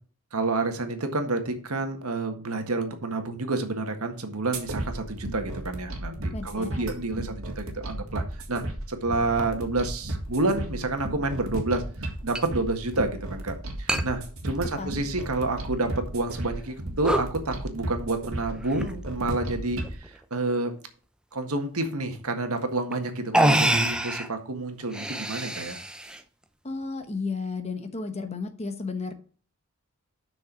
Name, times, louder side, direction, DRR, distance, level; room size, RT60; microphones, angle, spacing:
voice 1, 0.3-8.2 8.5-8.6 8.9-11.8 12.2-20.7 21.3-25.8, right 2 dB, 80° right, 6 dB, 1.6 m, -29 dB
sound 1, 4.5-19.9, right 1 dB, 65° right, 2.2 m, -34 dB
voice 2, 6.3-6.9 14.8-14.9 26.6-29.1, left 4 dB, 30° left, 8 dB, 1.1 m, -33 dB
sound 2, 10.7-10.8 12.3-12.4 12.8-12.9 13.9-14.0 14.5-15.2 15.8-15.9 16.5-16.7 17.0-17.3 18.5-19.0 19.8-20.2 22.1-22.2 22.9-23.0 23.3-24.3 24.8-26.2, right 1 dB, 5° right, 0.6 m, -26 dB
6.5 x 6.2 x 6.1 m, 0.42 s
head